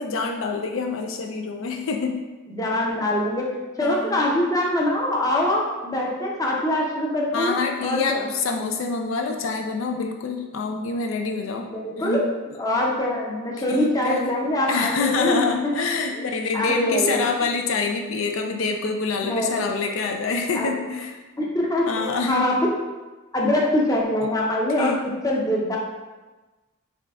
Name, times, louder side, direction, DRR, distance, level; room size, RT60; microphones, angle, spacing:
voice 1, 0.0-2.2 3.8-4.2 7.3-11.7 12.0-12.3 13.7-14.3 14.7-21.2 21.9-22.5 24.8-25.2, left 4 dB, 75° left, 3 dB, 0.4 m, -26 dB
voice 2, 2.5-7.6 7.8-8.3 11.7-12.3 12.6-15.7 16.1-16.3 16.5-17.3 19.2-19.7 20.5-20.7 21.4-22.6 23.3-24.9 25.2-25.8, left 1 dB, 15° left, -3 dB, 0.6 m, -24 dB
3.7 x 3.2 x 3.5 m, 1.2 s
head